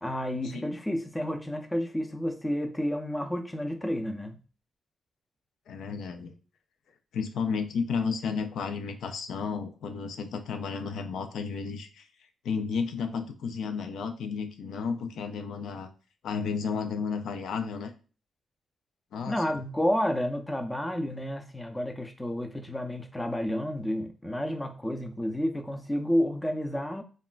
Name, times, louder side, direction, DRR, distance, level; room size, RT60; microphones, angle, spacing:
voice 1, 0.0-4.4 19.3-27.0, equal, 10° left, 0.4 m, -30 dB
voice 2, 5.7-6.3 7.1-12.1 12.4-15.9 16.2-17.9 19.1-19.6, left 5 dB, 85° left, 0.3 m, -32 dB
3.0 x 2.2 x 2.3 m
cardioid pair, 90°, 0 cm